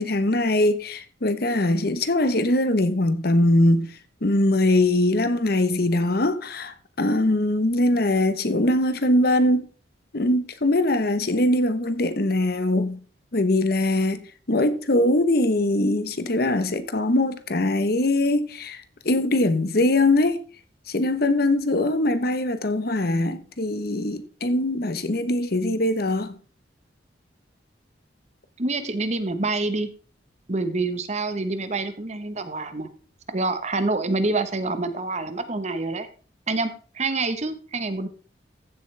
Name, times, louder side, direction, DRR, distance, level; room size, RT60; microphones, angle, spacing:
voice 1, 0.0-3.9 4.2-9.7 10.1-13.0 13.3-14.2 14.5-20.4 20.9-26.4, left 1 dB, 55° left, 1.0 m, -22 dB
voice 2, 28.6-29.9 30.5-32.9 33.3-36.1 36.5-38.1, right 3 dB, 40° right, 1.1 m, -27 dB
14.5 x 7.5 x 3.3 m
head